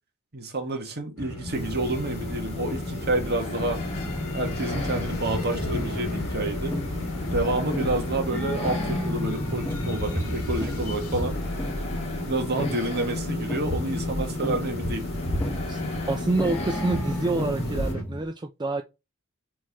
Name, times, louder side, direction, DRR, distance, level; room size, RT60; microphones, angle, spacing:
voice 1, 0.3-3.8 4.3-6.8 7.3-11.4 12.2-15.1, right 2 dB, 50° right, 1.6 m, -29 dB
sound 1, 1.2-18.0, left 2 dB, 70° left, 2.1 m, -33 dB
sound 2, 1.5-17.9, left 1 dB, 30° left, 1.8 m, -35 dB
sound 3, 4.8-5.3 5.7-6.1 6.7-7.2 7.7-13.1 13.5-14.0 14.4-14.9 15.4-15.9 16.4-18.3, left 1 dB, 10° left, 0.8 m, -34 dB
voice 2, 16.1-18.8, right 2 dB, 20° right, 0.4 m, -27 dB
4.6 x 4.3 x 4.7 m
head